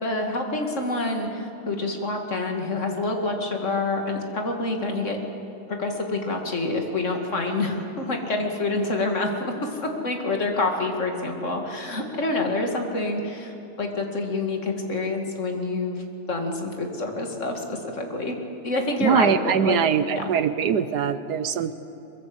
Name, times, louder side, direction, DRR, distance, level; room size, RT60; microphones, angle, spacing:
voice 1, 0.0-5.2 5.7-18.4 18.6-19.8 20.1-20.3, left 2 dB, 35° left, 2 dB, 2.6 m, -27 dB
voice 2, 19.0-21.7, right 8 dB, 65° right, 12 dB, 1.2 m, -22 dB
23.0 x 23.0 x 7.9 m, 3.0 s
omnidirectional pair, 2.2 m